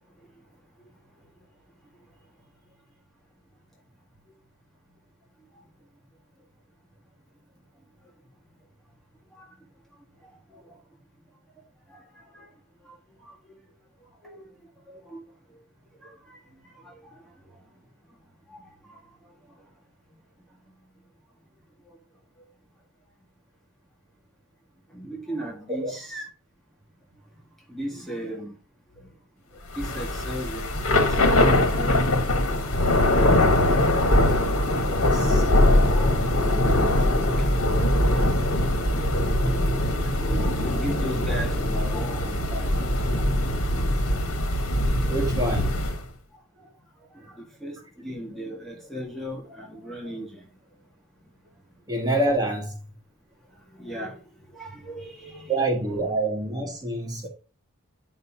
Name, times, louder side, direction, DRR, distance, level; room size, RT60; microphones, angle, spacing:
voice 1, 10.2-10.7 11.9-12.5 12.8-13.4 14.2-14.5 14.9-15.2 16.0-16.4 16.8-17.2 18.5-19.0 24.9-26.3 27.7-28.5 29.0-29.1 29.7-30.7 30.9-32.4 35.7-36.2 37.2-42.8 45.6-45.7 46.6-46.7 47.1-50.5 53.7-55.6, equal, ahead, 1.7 m, -37 dB
Thunder / Rain, 29.7-46.0, left 1 dB, 70° left, 1.5 m, -22 dB
voice 2, 34.8-35.4 35.7-36.2 45.1-45.7 51.9-52.8 55.5-57.3, right 2 dB, 15° right, 1.8 m, -27 dB
9.3 x 5.4 x 2.8 m
head